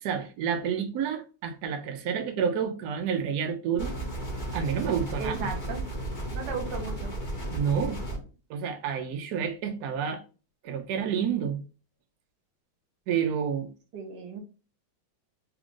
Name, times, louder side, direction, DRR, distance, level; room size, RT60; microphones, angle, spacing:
voice 1, 0.0-3.9 4.5-5.5 7.5-8.0 8.5-10.2 10.6-11.6 13.1-13.7, right 7 dB, 85° right, 0.8 m, -29 dB
sound 1, 3.8-8.2, right 1 dB, 40° left, 0.7 m, -34 dB
voice 2, 5.2-5.8 6.3-7.1 13.9-14.4, right 4 dB, 60° right, 1.5 m, -35 dB
3.4 x 2.4 x 3.6 m
omnidirectional pair, 2.3 m